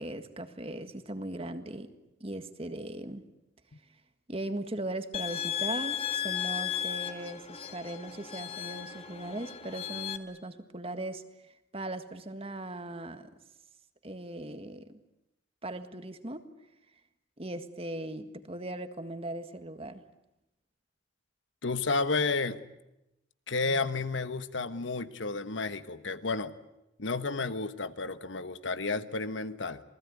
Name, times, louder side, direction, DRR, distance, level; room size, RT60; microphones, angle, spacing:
voice 1, 0.0-1.9 2.2-3.3 4.3-11.2 11.7-13.3 14.0-15.0 15.6-16.5 17.4-20.0, right 1 dB, 30° right, 9 dB, 1.8 m, -39 dB
sound 1, 5.1-10.2, left 10 dB, 30° left, 1.8 m, -35 dB
voice 2, 21.6-22.6 23.5-26.5 27.0-29.8, left 3 dB, 80° left, 11 dB, 1.4 m, -31 dB
28.0 x 20.0 x 9.8 m, 0.90 s
head